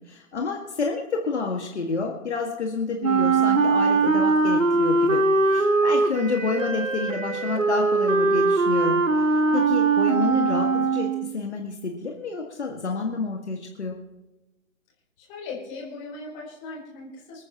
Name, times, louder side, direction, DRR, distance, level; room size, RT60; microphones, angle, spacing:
voice 1, 0.1-5.2 5.5-14.0, left 4 dB, 55° left, 1 dB, 1.8 m, -29 dB
Wind instrument woodwind instrument, 3.0-11.3, right 3 dB, 70° right, 1.4 m, -21 dB
voice 2, 15.2-17.4, left 3 dB, 20° left, -2 dB, 3.8 m, -38 dB
26.5 x 9.5 x 2.9 m, 1.0 s
figure-of-eight pair, 135°, 40 cm